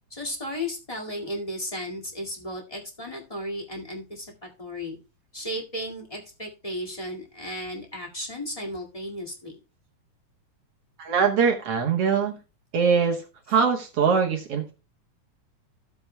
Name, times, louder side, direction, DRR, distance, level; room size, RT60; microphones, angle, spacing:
voice 1, 0.1-5.0 5.3-9.6, left 1 dB, 15° left, 0 dB, 1.4 m, -34 dB
voice 2, 11.0-12.4 12.7-13.2 13.5-14.7, right 6 dB, 60° right, 2 dB, 1.8 m, -22 dB
14.5 x 7.9 x 2.2 m, 0.30 s
omnidirectional pair, 3.8 m